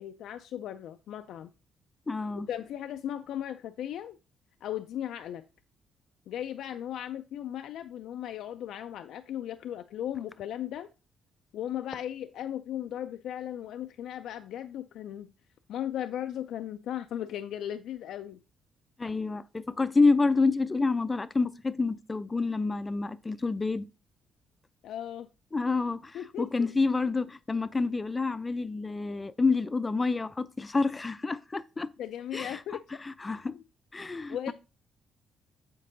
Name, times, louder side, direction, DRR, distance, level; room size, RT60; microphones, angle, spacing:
voice 1, 0.0-1.5 2.5-4.2 4.6-5.4 6.3-10.9 11.5-15.3 15.7-18.4 24.8-25.3 26.1-26.7 32.0-33.0 33.5-33.6 34.3-34.5, left 11 dB, 80° left, 0.4 m, -37 dB
voice 2, 2.1-2.5 19.0-23.9 25.5-31.9 32.3-32.6 33.0-33.6 33.9-34.5, left 3 dB, 25° left, 0.5 m, -28 dB
7.6 x 4.6 x 3.9 m
cardioid pair, 90°, 0 cm